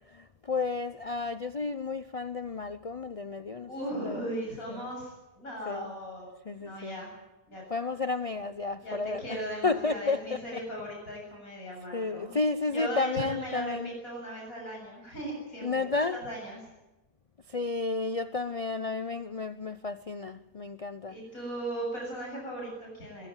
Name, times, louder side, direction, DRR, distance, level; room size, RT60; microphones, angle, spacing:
voice 1, 0.1-4.3 4.7-4.9 5.7-5.9 6.5-7.0 7.7-9.4 9.6-10.6 11.9-13.9 15.6-16.2 17.5-21.2, left 3 dB, 40° left, 0.5 m, -32 dB
voice 2, 3.7-6.3 6.6-7.1 7.5-7.6 8.8-12.3 12.7-13.7 14.0-16.6 21.1-23.3, right 1 dB, 55° left, 7.9 m, -37 dB
22.5 x 16.5 x 9.0 m
omnidirectional pair, 1.7 m